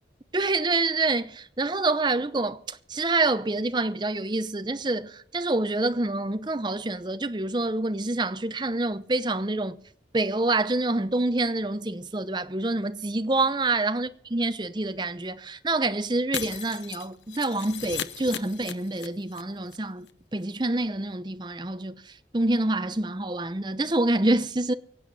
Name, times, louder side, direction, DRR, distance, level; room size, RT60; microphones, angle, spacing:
voice 1, 0.3-9.8 10.1-24.7, right 2 dB, 25° right, 0.7 m, -27 dB
Shatter, 16.3-19.4 19.7-19.8 20.1-20.2, left 8 dB, 90° left, 0.8 m, -36 dB
24.5 x 8.5 x 4.1 m
head